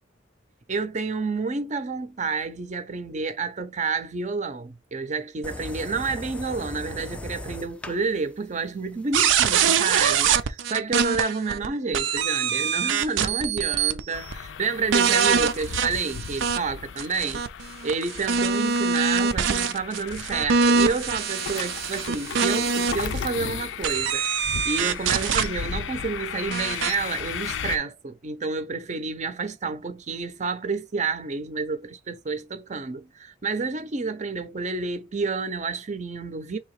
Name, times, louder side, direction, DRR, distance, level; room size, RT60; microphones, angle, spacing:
voice 1, 0.7-17.4 17.8-24.2 24.6-36.6, right 4 dB, 40° right, 0.6 m, -29 dB
sound 1, 5.4-10.4, left 1 dB, 5° left, 0.3 m, -39 dB
sound 2, 9.1-11.7 11.9-14.0 14.3-14.4 14.9-16.6 17.0-23.2 23.8-25.5 26.5-27.0, right 6 dB, 80° right, 0.5 m, -23 dB
sound 3, 14.1-27.8, left 7 dB, 75° left, 0.4 m, -36 dB
3.4 x 2.8 x 4.6 m
head